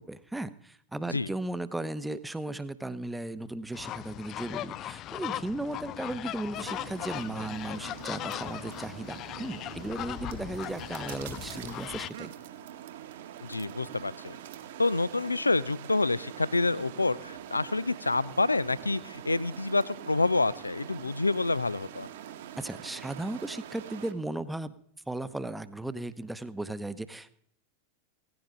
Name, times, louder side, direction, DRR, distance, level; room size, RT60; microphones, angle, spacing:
voice 1, 0.0-12.3 22.6-24.7 25.1-27.3, right 2 dB, 5° right, 15 dB, 0.9 m, -36 dB
sound 1, 3.7-12.1, left 13 dB, 35° left, 0.5 m, -38 dB
sound 2, 6.5-24.1, right 10 dB, 55° right, 1.8 m, -44 dB
voice 2, 13.4-14.4 14.8-22.1, left 3 dB, 80° left, 20 dB, 0.6 m, -28 dB
18.0 x 15.5 x 3.9 m, 0.67 s
figure-of-eight pair, 90°, 0 cm